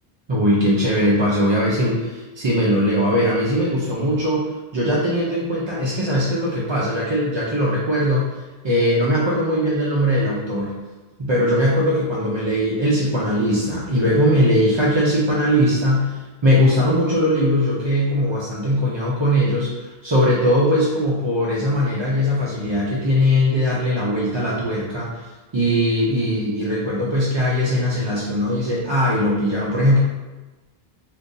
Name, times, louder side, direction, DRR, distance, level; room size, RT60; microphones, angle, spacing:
voice 1, 0.3-8.3 8.6-10.7 11.2-25.2 25.5-30.0, equal, 40° right, -6 dB, 0.4 m, -20 dB
2.6 x 2.5 x 3.7 m, 1.2 s
omnidirectional pair, 1.0 m